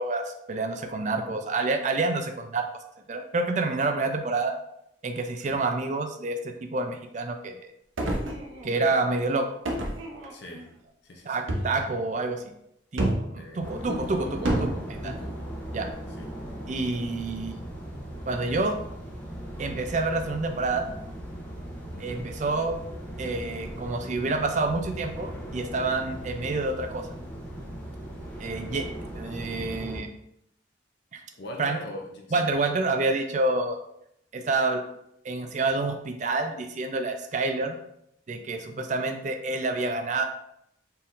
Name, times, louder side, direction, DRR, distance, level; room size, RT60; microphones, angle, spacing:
voice 1, 0.0-2.7 3.1-4.6 5.0-7.7 8.6-9.6 11.3-12.4 12.9-14.7 15.0-15.1 15.7-15.9 16.7-17.5 18.3-18.8 19.6-20.9 22.0-22.8 23.2-27.1 28.4-28.9 29.1-30.1 31.1-31.2 31.6-31.8 32.3-33.8 34.3-34.8 35.2-37.8 38.3-40.2, right 3 dB, 40° right, 6 dB, 0.4 m, -28 dB
sound 1, 8.0-8.9 9.6-10.6 11.5-11.9 13.0-13.4 14.4-14.8, right 1 dB, 90° right, 0.7 m, -28 dB
voice 2, 10.3-10.7 11.0-11.5 13.4-15.4 16.1-16.3 21.9-22.4 31.4-32.5, left 1 dB, 65° left, 1 dB, 0.7 m, -41 dB
sound 2, 13.6-30.0, right 1 dB, 10° left, 0.7 m, -38 dB
4.4 x 3.7 x 2.5 m, 0.75 s
head